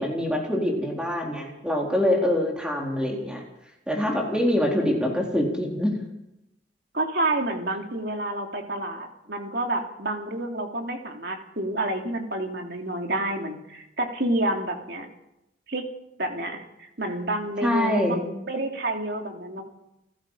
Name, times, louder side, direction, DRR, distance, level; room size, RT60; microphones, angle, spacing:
voice 1, 0.0-3.4 3.9-5.9 17.6-18.3, left 1 dB, 5° right, -1 dB, 4.2 m, -24 dB
voice 2, 6.9-15.1 15.7-15.8 16.2-19.6, right 1 dB, 55° right, 3 dB, 3.1 m, -29 dB
29.5 x 15.5 x 5.7 m, 0.87 s
head